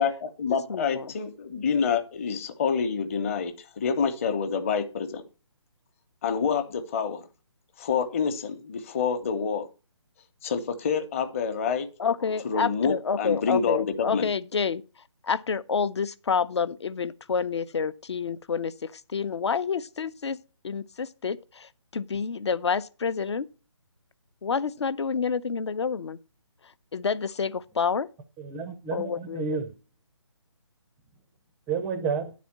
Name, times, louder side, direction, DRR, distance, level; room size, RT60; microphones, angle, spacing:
voice 1, 0.0-5.2 6.2-7.2 7.8-9.7 10.4-11.9 12.4-14.3, left 6 dB, 25° left, 1.0 m, -27 dB
voice 2, 0.7-1.1 12.0-14.8 15.2-20.4 20.6-23.5 24.4-26.2 26.9-28.1 28.9-29.6, left 6 dB, 60° left, 0.8 m, -28 dB
voice 3, 28.4-29.7 31.7-32.3, right 5 dB, 10° right, 0.5 m, -30 dB
10.0 x 4.2 x 7.2 m
figure-of-eight pair, 155°, 16 cm